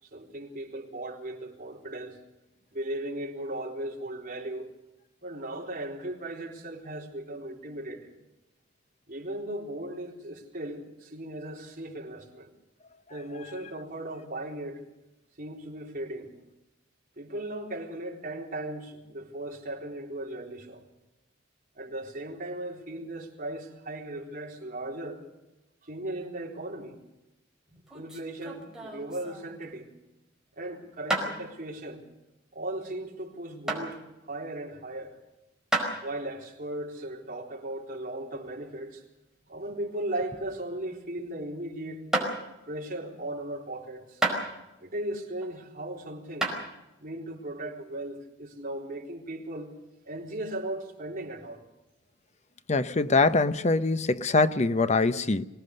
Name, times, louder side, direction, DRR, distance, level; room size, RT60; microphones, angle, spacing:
voice 1, 0.0-2.2 2.7-4.7 5.2-8.1 9.1-12.5 13.1-14.8 15.4-16.3 17.2-20.8 21.7-25.2 25.8-27.0 27.9-29.9 30.6-32.0 32.5-35.2 36.0-39.0 39.5-42.0 42.7-44.2 44.8-46.5 47.0-49.7 50.0-51.6, right 1 dB, 45° right, 4.1 m, -37 dB
sound 1, 27.7-29.7 31.1-31.3 33.7-33.9 35.7-36.0 39.2-40.6 40.9-41.2 42.1-42.3 44.2-44.8 45.4-45.9 46.4-46.6, right 1 dB, 5° right, 5.0 m, -31 dB
voice 2, 52.7-55.4, left 3 dB, 35° left, 0.8 m, -23 dB
24.0 x 19.0 x 6.7 m
head